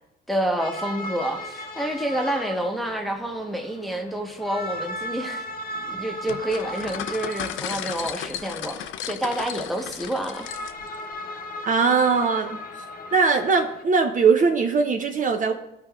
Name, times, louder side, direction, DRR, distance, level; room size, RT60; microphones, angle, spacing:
voice 1, 0.3-5.4 5.9-10.5, right 1 dB, ahead, 3 dB, 0.9 m, -28 dB
sound 1, 0.6-13.8, left 1 dB, 45° left, 0.8 m, -37 dB
sound 2, 6.3-11.0, left 10 dB, 75° left, 0.4 m, -34 dB
voice 2, 11.7-12.6 13.1-15.5, right 5 dB, 40° right, 4 dB, 0.5 m, -20 dB
13.0 x 4.4 x 2.3 m, 0.90 s
cardioid pair, 90°, 20 cm